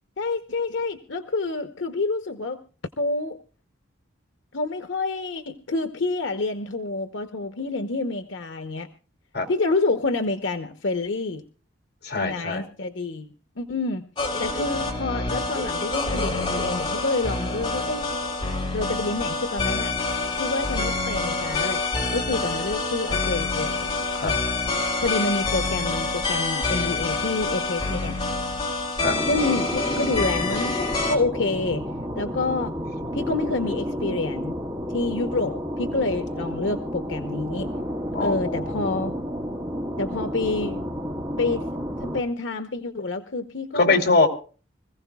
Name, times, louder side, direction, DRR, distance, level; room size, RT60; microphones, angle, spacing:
voice 1, 0.2-2.6 3.0-3.4 4.5-8.9 9.5-11.4 12.2-14.1 14.4-18.1 18.7-19.9 20.4-21.8 22.1-23.9 24.2-24.4 25.0-28.2 29.3-31.8 32.1-32.7 33.1-34.6 34.9-37.7 38.2-39.2 40.0-40.8 41.4-41.6 42.0-44.0, left 3 dB, 80° left, 8 dB, 0.9 m, -28 dB
voice 2, 12.0-12.6 24.2-24.3 29.0-29.1 38.1-39.1 43.7-44.3, left 3 dB, 55° left, 4 dB, 3.1 m, -23 dB
sound 1, 14.2-31.2, left 3 dB, 25° left, 3.5 m, -27 dB
sound 2, 29.0-42.2, equal, 20° right, 1.8 m, -31 dB
25.5 x 15.5 x 2.3 m, 0.38 s
head